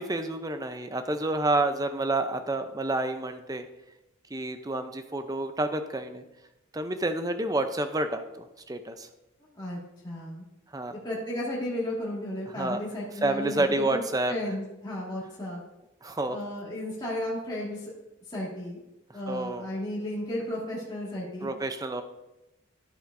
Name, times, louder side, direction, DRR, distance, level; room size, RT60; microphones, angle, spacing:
voice 1, 0.0-3.6 4.3-6.2 6.7-9.1 10.7-10.9 12.6-12.8 13.2-14.3 16.0-16.4 19.3-19.7 21.4-22.0, right 2 dB, 15° right, 8 dB, 0.5 m, -29 dB
voice 2, 10.0-10.4 10.9-15.6 16.3-17.9 18.3-18.8 19.1-21.5, left 1 dB, 20° left, -6 dB, 1.9 m, -34 dB
11.5 x 8.0 x 2.6 m, 0.96 s
head